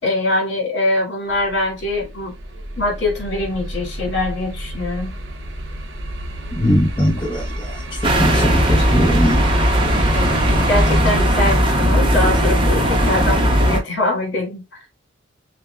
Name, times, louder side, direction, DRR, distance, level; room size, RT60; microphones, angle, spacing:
voice 1, 0.0-2.3 2.8-5.1 10.1-10.4 10.7-14.6, left 2 dB, 60° left, 2.3 m, -23 dB
sound 1, 1.3-11.0, right 1 dB, 75° right, 0.8 m, -29 dB
voice 2, 6.5-9.5, equal, 25° left, 0.8 m, -20 dB
sound 2, 8.0-13.8, equal, 25° right, 0.7 m, -17 dB
6.2 x 2.2 x 2.3 m
head